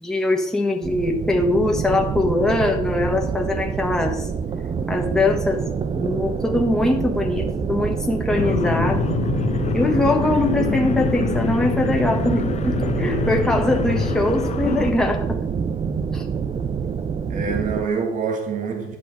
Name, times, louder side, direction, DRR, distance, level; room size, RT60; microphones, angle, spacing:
voice 1, 0.0-4.3 4.9-5.6 5.9-9.1 9.7-15.4 16.1-16.2, left 2 dB, 5° left, 1.2 m, -22 dB
sound 1, 0.8-17.9, right 6 dB, 35° right, 0.6 m, -26 dB
sound 2, 8.4-14.9, left 7 dB, 40° left, 0.7 m, -25 dB
voice 2, 15.6-16.0 17.3-19.0, right 5 dB, 50° right, 1.8 m, -26 dB
11.0 x 7.0 x 4.7 m
cardioid pair, 110°, 17 cm